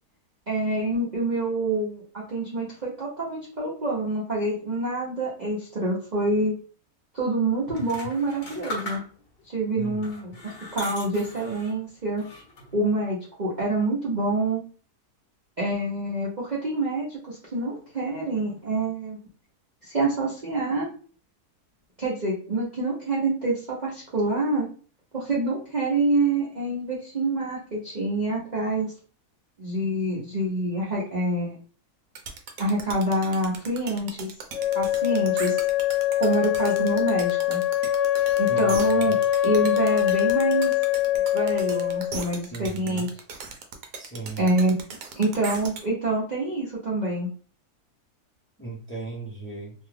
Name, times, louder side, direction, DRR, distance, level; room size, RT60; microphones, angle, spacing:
voice 1, 0.5-6.5 7.1-9.0 9.5-10.3 10.7-12.2 12.7-14.6 15.6-19.2 19.8-20.9 22.0-24.7 25.1-28.9 29.6-31.6 32.6-34.3 34.7-35.6 36.2-37.6 38.4-39.2 39.4-40.7 41.3-43.1 44.4-44.7 45.2-47.3, right 2 dB, 40° right, -6 dB, 0.6 m, -26 dB
sound 1, 7.7-9.4 10.0-11.8 12.2-12.8, left 1 dB, 45° left, 1.0 m, -39 dB
sound 2, 32.1-45.8, right 5 dB, 75° right, 1.0 m, -38 dB
Wind instrument woodwind instrument, 34.5-42.3, left 13 dB, 70° left, 1.0 m, -23 dB
voice 2, 38.5-39.2 42.5-43.1 44.0-44.5 48.6-49.7, right 3 dB, 10° left, -4 dB, 0.6 m, -37 dB
2.7 x 2.3 x 3.3 m, 0.41 s
omnidirectional pair, 1.7 m